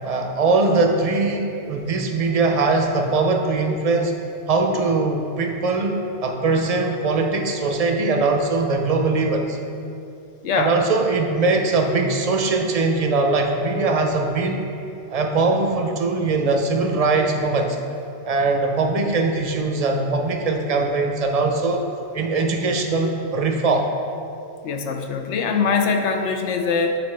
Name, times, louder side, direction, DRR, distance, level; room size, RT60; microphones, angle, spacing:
voice 1, 0.0-4.1 4.5-9.6 10.5-14.7 15.1-17.8 18.2-21.9 22.1-23.9, right 3 dB, 50° right, 3 dB, 0.5 m, -21 dB
voice 2, 10.4-10.8 24.6-27.0, left 5 dB, 90° left, 4 dB, 0.9 m, -22 dB
9.3 x 4.1 x 3.3 m, 2.6 s
omnidirectional pair, 1.1 m